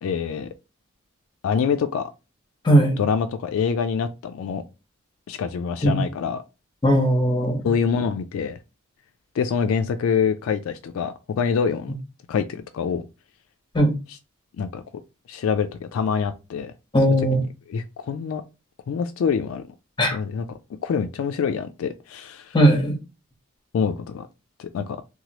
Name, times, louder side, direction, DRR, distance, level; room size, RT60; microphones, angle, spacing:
voice 1, 0.0-0.5 1.4-2.1 3.0-4.6 5.3-6.4 7.6-8.6 9.4-11.9 12.3-13.0 14.6-14.8 15.3-16.7 17.7-18.4 18.9-19.6 20.1-20.4 20.8-22.6 23.7-24.3 24.6-25.0, left 6 dB, 70° left, 0.3 m, -25 dB
voice 2, 2.6-3.0 5.8-6.0 6.8-7.6 13.7-13.9 16.9-17.4 20.0-20.2 22.5-23.0, equal, 20° left, 0.7 m, -18 dB
3.0 x 2.2 x 2.8 m
head